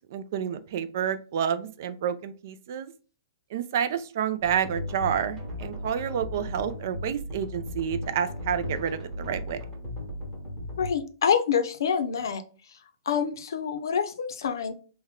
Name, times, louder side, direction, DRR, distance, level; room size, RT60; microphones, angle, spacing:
voice 1, 0.1-2.9 3.5-9.6, right 8 dB, 45° right, 12 dB, 0.4 m, -29 dB
sound 1, 4.4-10.9, left 1 dB, 5° right, 1.2 m, -36 dB
voice 2, 10.8-12.4 13.1-14.7, left 7 dB, 65° left, 8 dB, 0.6 m, -26 dB
3.5 x 2.1 x 3.6 m, 0.37 s
hypercardioid pair, 170°, 2 cm